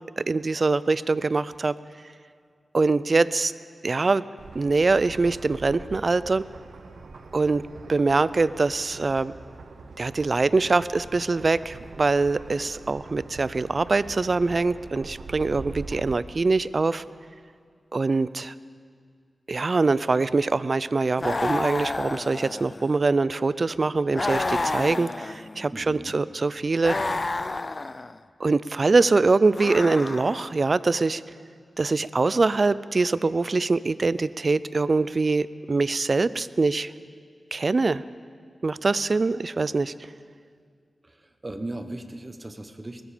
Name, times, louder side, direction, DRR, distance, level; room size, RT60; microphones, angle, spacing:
voice 1, 0.2-1.7 2.7-3.5 3.8-4.2 4.5-6.4 7.3-7.6 7.9-9.3 10.0-17.0 17.9-18.5 19.5-27.2 28.4-31.2 31.8-36.9 37.5-38.0 38.6-39.9, right 3 dB, 50° right, 17 dB, 0.4 m, -23 dB
sound 1, 4.4-16.2, right 4 dB, 85° right, 0.8 m, -43 dB
sound 2, 21.2-23.0 24.1-25.7 26.8-28.2 29.5-30.6, left 2 dB, 40° left, 0.4 m, -30 dB
voice 2, 25.7-26.2 41.0-41.2 41.4-43.0, right 1 dB, 30° right, 8 dB, 1.1 m, -37 dB
19.5 x 13.0 x 5.0 m, 2.1 s
cardioid pair, 65°, 0 cm